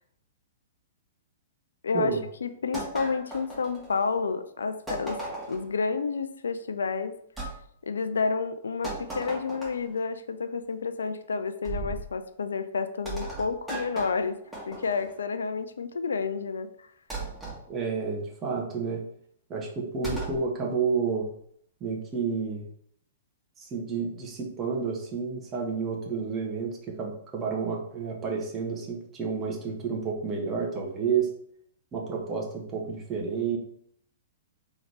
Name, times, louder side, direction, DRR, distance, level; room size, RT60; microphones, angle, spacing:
voice 1, 1.8-2.1 2.4-5.2 5.5-7.1 7.8-14.4 14.7-16.9, left 5 dB, 70° left, 10 dB, 0.4 m, -30 dB
sound 1, 2.7-4.2 4.9-5.7 7.4-7.5 8.8-10.0 11.6-12.1 13.0-15.2 17.1-17.6 20.0-20.4, right 2 dB, 5° right, 1.5 m, -36 dB
voice 2, 17.7-19.0 19.5-21.3 21.8-22.7 23.6-31.3 31.9-33.6, right 5 dB, 25° right, -1 dB, 0.8 m, -30 dB
3.8 x 3.0 x 3.3 m, 0.67 s
figure-of-eight pair, 105°, 0 cm